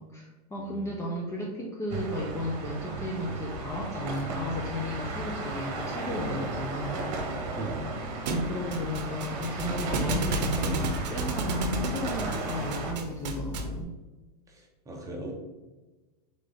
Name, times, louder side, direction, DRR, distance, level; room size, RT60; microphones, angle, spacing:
voice 1, 0.0-7.1 8.3-14.0, left 1 dB, 15° left, -2 dB, 0.5 m, -34 dB
sound 1, 1.9-12.9, right 2 dB, 55° right, 1.0 m, -35 dB
voice 2, 7.5-7.9 14.9-15.3, right 2 dB, 15° right, -1 dB, 0.9 m, -37 dB
Thump thud, 8.3-13.8, right 2 dB, 85° right, 0.6 m, -32 dB
3.9 x 3.7 x 3.5 m, 1.2 s
supercardioid pair, 135°, 21 cm